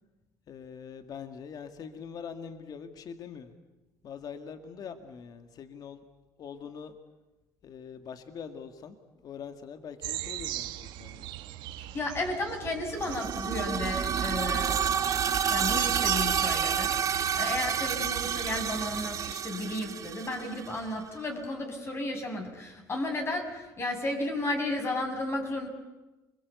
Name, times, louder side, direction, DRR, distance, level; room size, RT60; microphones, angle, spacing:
voice 1, 0.5-3.5 4.0-6.0 6.4-7.0 7.6-9.0 9.2-11.3, left 7 dB, 50° left, 8 dB, 2.1 m, -43 dB
sound 1, 10.0-19.3, right 14 dB, 75° right, 1.5 m, -40 dB
voice 2, 11.8-14.8 15.5-25.7, left 2 dB, 30° left, 4 dB, 6.4 m, -33 dB
sound 2, 13.0-20.8, right 7 dB, 45° right, 1.5 m, -29 dB
29.0 x 22.5 x 8.3 m, 1.1 s
supercardioid pair, 90°, 8 cm